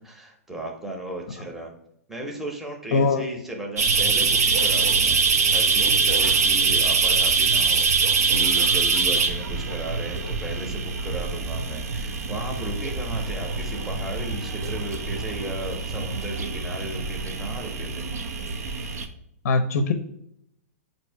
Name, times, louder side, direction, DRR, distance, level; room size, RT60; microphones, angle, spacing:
voice 1, 0.0-1.7 2.1-5.2 5.5-18.1, right 1 dB, 5° right, 0 dB, 0.7 m, -35 dB
voice 2, 2.9-3.3 19.4-19.9, left 3 dB, 70° left, 8 dB, 0.5 m, -21 dB
sound 1, 3.8-19.1, right 5 dB, 80° right, 0.6 m, -24 dB
4.4 x 2.7 x 4.4 m, 0.75 s
hypercardioid pair, 130°, 8 cm